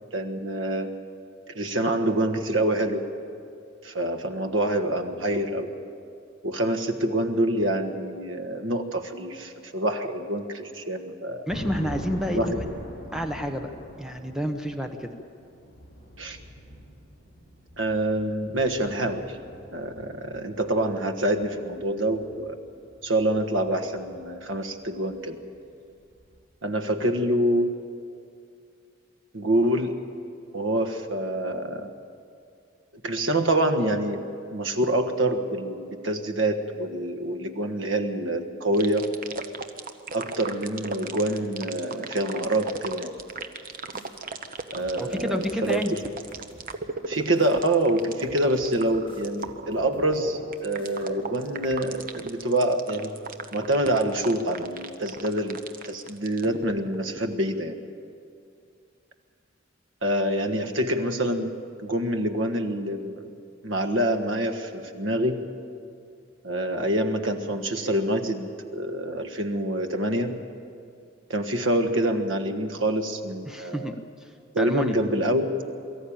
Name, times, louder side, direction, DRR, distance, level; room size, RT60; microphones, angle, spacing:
voice 1, 0.1-0.9 1.5-3.0 3.8-5.7 6.4-11.5 12.3-12.6 16.2-16.4 17.8-19.4 19.7-22.6 23.0-25.4 26.6-27.7 29.3-29.9 30.5-31.9 33.0-39.1 40.1-43.1 44.7-46.0 47.1-53.1 53.5-55.6 55.8-57.7 60.0-61.5 61.8-63.3 63.6-65.5 66.4-70.4 71.3-73.9 74.5-75.5, right 1 dB, 70° right, 6 dB, 1.5 m, -26 dB
sound 1, 11.5-25.9 26.2-26.4, equal, 45° left, 7.6 m, -43 dB
voice 2, 11.5-12.7 13.1-13.7 14.0-15.1 45.0-45.9 73.5-73.9 74.2-74.3 74.6-75.0, equal, 5° right, 6 dB, 0.9 m, -29 dB
sound 2, 38.7-57.5, right 4 dB, 45° right, 1.1 m, -36 dB
sound 3, 43.2-44.2 44.6-47.6 48.0-50.2 50.6-51.1 51.4-51.9, left 1 dB, 25° left, 3.1 m, -51 dB
23.5 x 14.0 x 8.8 m, 2.4 s
head